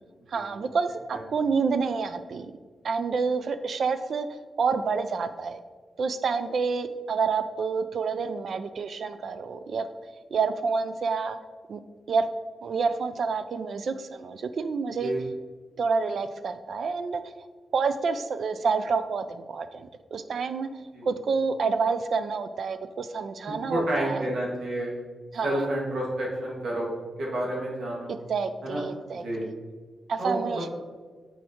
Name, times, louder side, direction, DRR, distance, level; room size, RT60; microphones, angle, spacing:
voice 1, 0.3-2.5 2.8-4.3 4.6-5.6 6.0-9.9 10.3-11.4 11.7-11.8 12.1-12.3 12.6-15.1 15.8-17.2 17.7-20.7 21.0-24.3 25.3-25.7 28.3-29.5 30.1-30.7, right 5 dB, 65° right, 11 dB, 0.4 m, -28 dB
voice 2, 23.5-25.0 25.4-26.9 27.2-28.1 28.6-28.8 29.1-29.5 30.2-30.7, right 1 dB, 80° right, -3 dB, 1.9 m, -30 dB
6.3 x 5.0 x 4.4 m, 1.4 s
wide cardioid pair, 120°, 0 cm